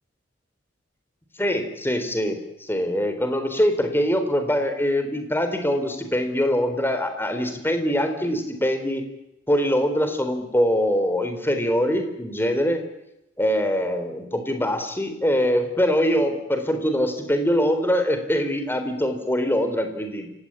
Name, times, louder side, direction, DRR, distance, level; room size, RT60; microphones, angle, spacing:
voice 1, 1.4-9.1 9.5-12.8 13.4-20.3, equal, 10° left, 7 dB, 3.8 m, -23 dB
28.5 x 17.5 x 10.0 m, 0.88 s
head